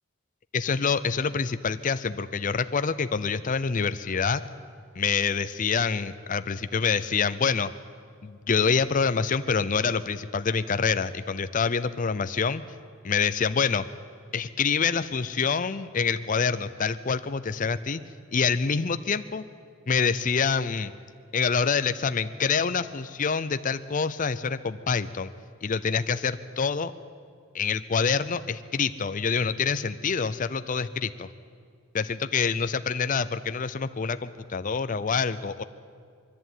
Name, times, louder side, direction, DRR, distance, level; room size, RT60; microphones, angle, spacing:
voice 1, 0.5-4.4 5.0-7.7 8.2-12.6 13.0-13.9 14.3-18.0 18.3-19.4 19.9-20.9 21.3-25.3 25.6-26.9 27.5-31.3 31.9-35.6, left 5 dB, 40° left, 12 dB, 0.5 m, -26 dB
21.5 x 14.0 x 9.2 m, 2.2 s
head